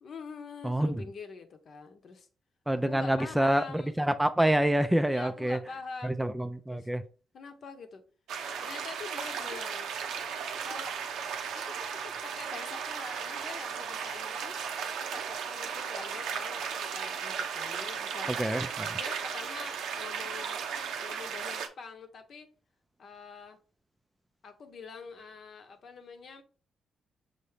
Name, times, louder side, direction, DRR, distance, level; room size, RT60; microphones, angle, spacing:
voice 1, 0.0-2.3 2.7-4.0 5.0-6.3 6.7-6.9 7.3-8.0 8.6-9.9 10.6-11.0 11.5-18.3 19.0-20.6 21.0-22.5 23.0-23.6 24.4-26.4, left 5 dB, 60° left, 0.9 m, -45 dB
voice 2, 0.6-1.0 2.7-5.6 6.0-7.0 18.3-19.0, right 1 dB, 10° right, 0.4 m, -27 dB
sound 1, 8.3-21.7, right 7 dB, 90° right, 0.6 m, -36 dB
5.8 x 2.7 x 3.3 m
cardioid pair, 85°, 0 cm